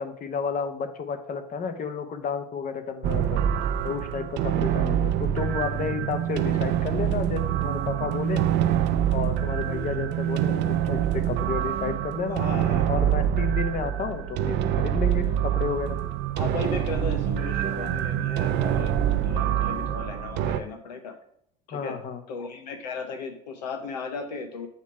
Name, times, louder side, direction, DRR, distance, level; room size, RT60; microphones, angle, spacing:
voice 1, 0.0-3.4 3.8-8.4 9.1-12.4 12.9-16.0 21.7-22.2, left 6 dB, 40° left, 8 dB, 1.1 m, -31 dB
sound 1, 3.0-20.6, right 11 dB, 55° right, 0.6 m, -25 dB
voice 2, 12.3-12.8 16.4-21.2 21.7-22.0 22.3-24.7, left 4 dB, 80° left, 7 dB, 0.8 m, -36 dB
8.4 x 3.1 x 4.8 m, 0.68 s
hypercardioid pair, 75°, 21 cm